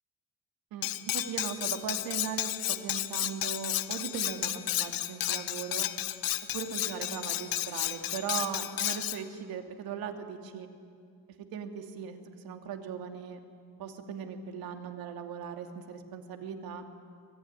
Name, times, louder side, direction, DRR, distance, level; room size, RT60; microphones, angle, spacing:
voice 1, 0.7-5.9 6.5-10.7 11.4-13.4 13.8-16.8, right 7 dB, 75° right, 5 dB, 2.5 m, -39 dB
Cutlery silverware, 0.8-9.2, left 14 dB, 70° left, 1.0 m, -32 dB
24.5 x 19.5 x 9.7 m, 2.3 s
cardioid pair, 145°, 36 cm